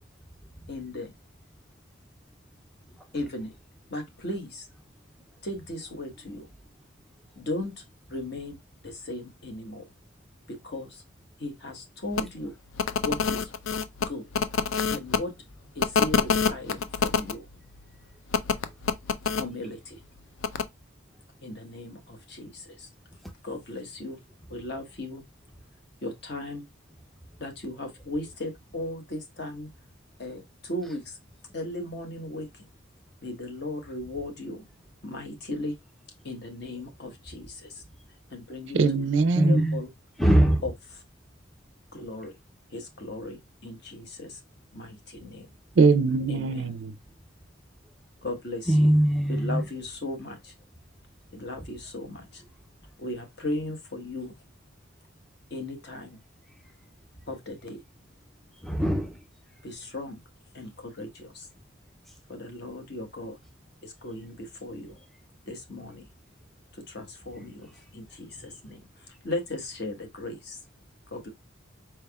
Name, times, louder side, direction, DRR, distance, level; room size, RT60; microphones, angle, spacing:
voice 1, 0.7-1.1 3.1-3.5 3.9-4.6 5.4-6.5 7.4-7.7 8.1-8.6 8.8-9.9 10.5-11.0 11.4-12.5 13.0-13.5 14.1-14.3 14.9-15.3 15.7-17.4 19.4-20.0 21.4-22.9 23.4-24.2 24.5-25.2 26.0-26.6 27.4-29.7 30.2-31.2 31.5-32.5 33.2-34.6 35.0-35.8 36.2-37.8 38.3-38.8 39.5-39.9 40.6-40.7 41.9-42.3 42.7-44.4 44.7-45.5 46.3-46.7 48.2-48.9 49.3-50.5 51.3-52.4 53.0-54.3 55.5-56.2 57.3-57.8 59.6-60.2 60.5-61.5 62.3-63.4 63.8-64.9 65.5-66.0 66.9-68.8 69.2-70.6 71.1-71.3, left 1 dB, 55° left, 1.1 m, -36 dB
sound 1, 12.1-12.2 12.7-15.2 15.8-17.3 18.3-19.4 20.4-20.6, left 6 dB, 70° left, 0.4 m, -26 dB
voice 2, 38.7-39.6 45.8-46.9, right 4 dB, 60° right, 0.4 m, -22 dB
voice 3, 39.4-39.8 40.2-40.6 48.7-49.6 58.6-59.2 64.7-65.0 68.3-68.5, right 1 dB, ahead, 0.4 m, -22 dB
4.5 x 3.4 x 2.2 m
head